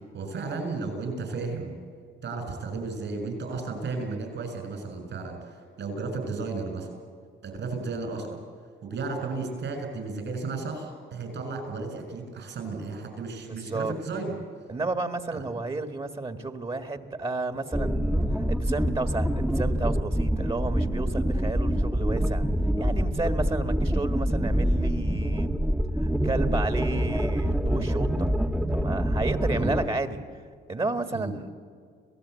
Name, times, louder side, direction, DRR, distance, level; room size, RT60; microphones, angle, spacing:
voice 1, 0.0-1.8 2.2-6.9 7.4-8.3 8.8-14.4 15.3-15.4 29.5-29.7 31.1-31.3, right 3 dB, 65° right, 5 dB, 7.1 m, -34 dB
voice 2, 13.4-13.9 14.7-18.2 18.5-22.5 22.8-25.5 25.9-28.3 28.7-30.2 30.7-31.5, right 3 dB, 25° right, 9 dB, 1.8 m, -32 dB
sound 1, 17.7-29.9, equal, 5° right, 1.2 m, -26 dB
26.0 x 18.0 x 8.4 m, 2.1 s
cardioid pair, 90°, 20 cm